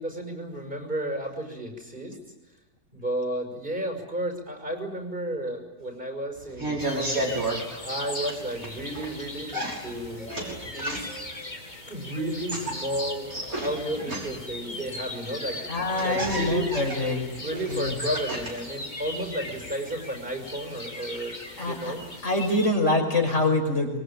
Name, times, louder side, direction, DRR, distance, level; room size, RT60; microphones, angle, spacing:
voice 1, 0.0-2.2 2.9-7.3 7.8-10.3 10.6-11.1 11.9-15.7 16.0-16.8 17.4-22.0, right 1 dB, 30° right, 4 dB, 6.3 m, -32 dB
sound 1, 6.4-7.6 8.2-9.1 9.5-11.3 12.3-14.6 15.4-15.5 15.8-18.7 19.0-19.7, right 1 dB, 65° right, 6.5 m, -32 dB
sound 2, 6.8-22.7, left 2 dB, 30° left, 2.7 m, -39 dB
voice 2, 15.7-17.3 17.7-18.0 21.6-21.9 22.2-24.0, left 2 dB, 50° left, 3 dB, 6.0 m, -25 dB
26.0 x 23.5 x 9.0 m, 1.1 s
omnidirectional pair, 1.6 m